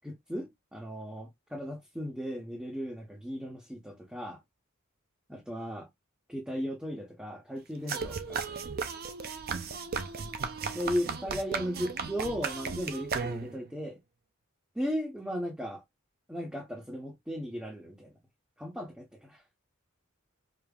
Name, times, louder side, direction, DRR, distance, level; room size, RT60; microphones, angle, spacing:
voice 1, 0.0-4.4 5.3-5.9 6.3-8.6 10.7-14.0 14.7-15.8 16.3-18.1 18.6-19.4, equal, 5° right, 0.8 m, -36 dB
sound 1, 7.9-13.7, right 5 dB, 45° right, 0.5 m, -35 dB
5.0 x 2.8 x 2.4 m
head